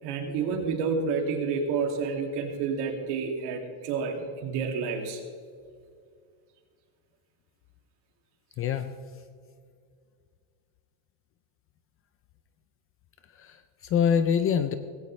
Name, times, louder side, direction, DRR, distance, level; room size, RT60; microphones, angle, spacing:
voice 1, 0.0-5.2, right 5 dB, 60° right, 2 dB, 2.6 m, -29 dB
voice 2, 8.6-8.9 13.4-14.7, left 7 dB, 30° left, 10 dB, 0.4 m, -25 dB
18.5 x 16.0 x 3.2 m, 2.1 s
cardioid pair, 165°, 46 cm